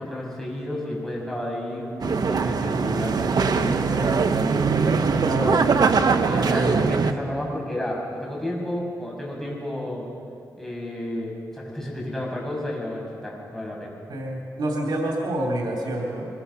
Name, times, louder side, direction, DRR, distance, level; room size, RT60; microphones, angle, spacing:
voice 1, 0.0-4.5 6.2-10.1 10.6-14.0, left 1 dB, 5° left, -3 dB, 6.7 m, -31 dB
sound 1, 2.0-7.1, right 5 dB, 65° right, 1.0 m, -21 dB
voice 2, 5.2-5.8 14.1-16.3, right 1 dB, 90° right, -2 dB, 2.9 m, -27 dB
23.5 x 21.5 x 5.7 m, 2.5 s
wide cardioid pair, 90°, 7 cm